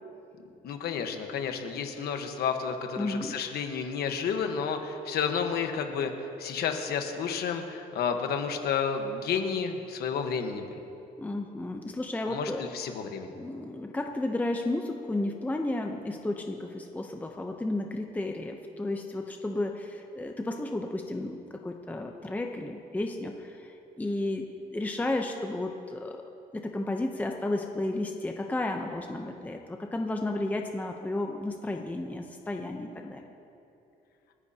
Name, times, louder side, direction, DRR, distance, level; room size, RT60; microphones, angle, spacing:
voice 1, 0.6-6.1 6.4-10.8 12.3-13.3, left 6 dB, 85° left, 5 dB, 1.2 m, -31 dB
voice 2, 3.0-3.4 11.2-12.6 13.4-26.2 26.5-33.2, left 2 dB, 10° left, 3 dB, 0.7 m, -33 dB
29.0 x 10.0 x 2.8 m, 2.8 s
cardioid pair, 135°, 16 cm